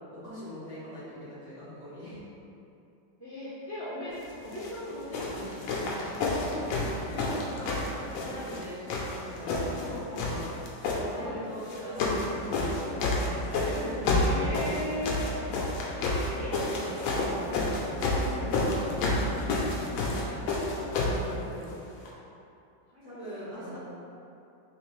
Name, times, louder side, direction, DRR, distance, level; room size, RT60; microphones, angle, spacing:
voice 1, 0.1-2.2 6.2-7.8 8.1-10.5 10.9-12.2 12.4-14.1 18.1-19.4 20.8-21.7 23.0-23.8, equal, 40° left, -14 dB, 1.5 m, -41 dB
voice 2, 3.2-4.2 4.4-5.9 9.6-10.3 11.2-11.4 14.1-15.3 15.9-17.7 20.0-20.8 22.9-23.8, equal, 20° right, -16 dB, 1.1 m, -39 dB
sound 1, 4.5-4.7 5.1-8.6 8.9-9.9 10.1-11.0 11.6-12.3 12.5-21.2 22.0-22.1, left 2 dB, 85° left, 1.5 m, -29 dB
3.8 x 3.2 x 3.0 m, 2.7 s
omnidirectional pair, 2.2 m